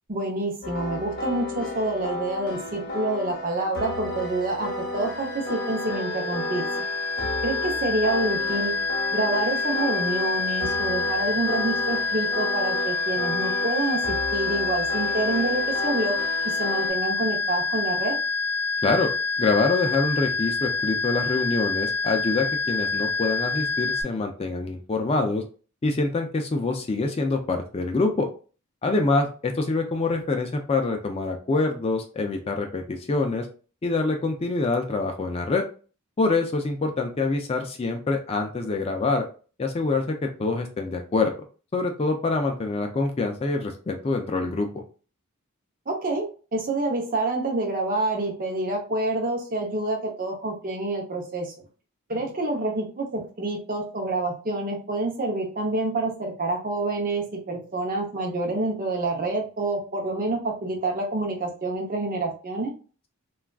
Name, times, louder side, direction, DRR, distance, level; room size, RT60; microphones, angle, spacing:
voice 1, 0.1-6.7 7.4-8.7 9.1-16.2 16.4-18.2 45.9-46.3 46.5-51.5 52.1-62.7, right 2 dB, 40° right, 2 dB, 0.7 m, -27 dB
sound 1, 0.6-16.9, left 2 dB, 45° left, 0.8 m, -33 dB
sound 2, 4.9-24.0, left 3 dB, 85° left, 0.6 m, -27 dB
voice 2, 19.4-25.4 25.8-28.3 28.8-33.5 33.8-35.6 36.2-39.2 39.6-41.3 41.7-44.8, left 3 dB, 25° left, 4 dB, 0.3 m, -25 dB
3.4 x 2.3 x 2.2 m, 0.37 s
head